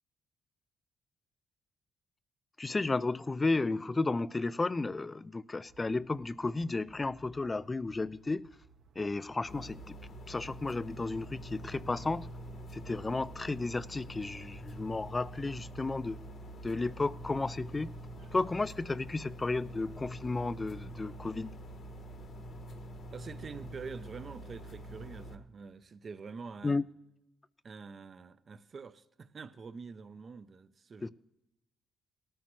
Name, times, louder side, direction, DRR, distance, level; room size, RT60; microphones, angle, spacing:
voice 1, 2.6-8.5 9.0-9.9 10.3-12.3 12.7-16.2 16.6-17.9 18.3-21.6 26.6-26.8 31.0-31.1, left 3 dB, 25° left, 0.3 m, -33 dB
sound 1, 5.6-22.8, right 4 dB, 70° right, 1.1 m, -62 dB
sound 2, 9.5-25.3, right 1 dB, 55° left, 1.2 m, -46 dB
voice 2, 23.1-26.8 27.6-31.1, right 5 dB, 40° right, 0.6 m, -46 dB
18.0 x 13.5 x 3.1 m
cardioid pair, 90°, 0 cm